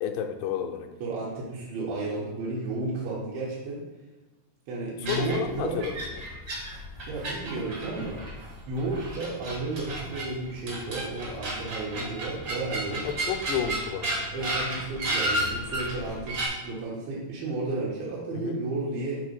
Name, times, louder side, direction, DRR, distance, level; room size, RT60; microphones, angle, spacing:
voice 1, 0.0-0.9 5.0-6.2 13.0-14.3 18.3-18.6, left 7 dB, 80° left, 4 dB, 2.0 m, -31 dB
voice 2, 1.0-3.8 4.7-5.8 7.1-8.2 8.7-13.1 14.3-16.4 16.6-19.2, right 2 dB, 85° right, -7 dB, 2.9 m, -32 dB
sound 1, 5.0-16.5, right 1 dB, 60° right, 1.2 m, -33 dB
6.0 x 3.9 x 4.9 m, 1.1 s
omnidirectional pair, 4.2 m